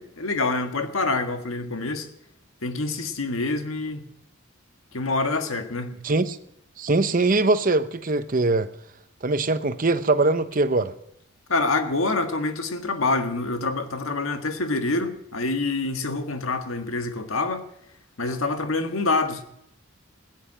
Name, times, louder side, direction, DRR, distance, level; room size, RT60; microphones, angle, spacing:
voice 1, 0.0-2.1 2.6-4.1 4.9-6.0 11.5-17.6 18.2-19.4, left 3 dB, 80° left, 1.7 m, -26 dB
voice 2, 6.0-6.4 6.8-8.7 9.2-10.9, right 2 dB, 40° right, 0.8 m, -22 dB
15.5 x 9.3 x 9.0 m
head